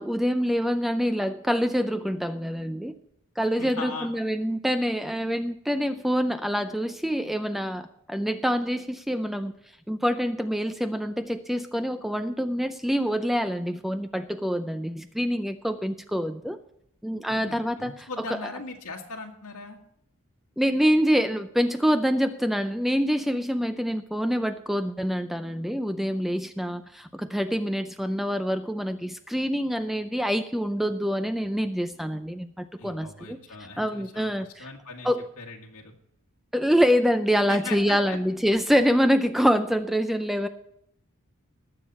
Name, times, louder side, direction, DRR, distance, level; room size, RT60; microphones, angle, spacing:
voice 1, 0.0-2.9 3.4-9.5 9.9-16.6 17.0-18.1 20.6-33.4 33.8-34.7 35.0-35.3 36.5-40.5, equal, ahead, 9 dB, 0.4 m, -26 dB
voice 2, 3.6-4.1 17.3-19.8 32.8-35.1 35.4-35.9 37.5-38.2, left 3 dB, 85° left, 0 dB, 1.9 m, -39 dB
19.5 x 7.5 x 4.2 m, 0.75 s
head